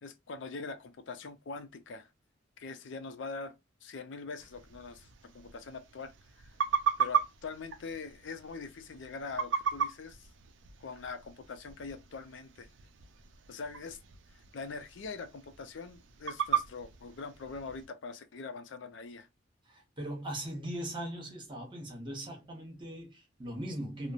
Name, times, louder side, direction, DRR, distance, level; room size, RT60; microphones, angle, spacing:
voice 1, 0.0-2.1 2.6-6.5 7.0-10.3 10.8-12.7 13.5-14.0 14.5-19.3, left 4 dB, 70° left, 0.5 m, -43 dB
sound 1, 4.4-17.9, right 7 dB, 75° right, 0.4 m, -37 dB
voice 2, 19.7-24.1, right 1 dB, 25° right, 1.0 m, -39 dB
2.9 x 2.0 x 2.4 m
head